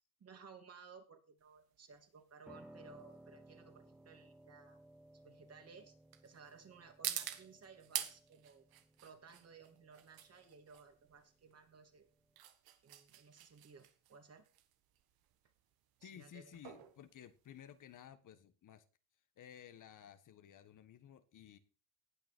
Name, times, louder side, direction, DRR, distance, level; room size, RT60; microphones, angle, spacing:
voice 1, 0.2-4.8 5.2-5.9 6.2-8.6 9.0-12.1 12.8-14.4 16.0-16.6, right 5 dB, 40° right, 6 dB, 2.8 m, -58 dB
sound 1, 1.4-18.1, right 12 dB, 80° right, 1.6 m, -48 dB
Piano, 2.5-12.4, right 1 dB, 5° right, 1.5 m, -61 dB
voice 2, 16.0-18.8 19.4-21.6, left 9 dB, 55° left, 10 dB, 1.5 m, -55 dB
18.5 x 6.2 x 4.5 m, 0.36 s
cardioid pair, 90°, 36 cm